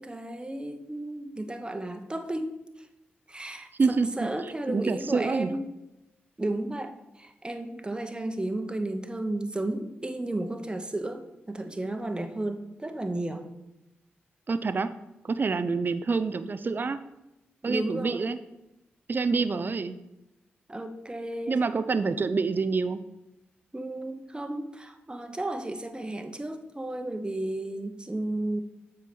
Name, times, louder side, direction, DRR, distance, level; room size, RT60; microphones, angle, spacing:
voice 1, 0.0-2.9 3.3-5.6 6.4-13.5 17.6-18.3 20.7-21.6 23.7-28.6, right 1 dB, 20° right, 7 dB, 1.1 m, -33 dB
voice 2, 3.8-5.5 14.5-14.9 15.2-17.0 17.6-18.4 19.1-20.0 21.5-23.0, right 4 dB, 45° right, 11 dB, 0.5 m, -27 dB
7.5 x 4.7 x 5.4 m, 0.93 s
supercardioid pair, 45°, 5 cm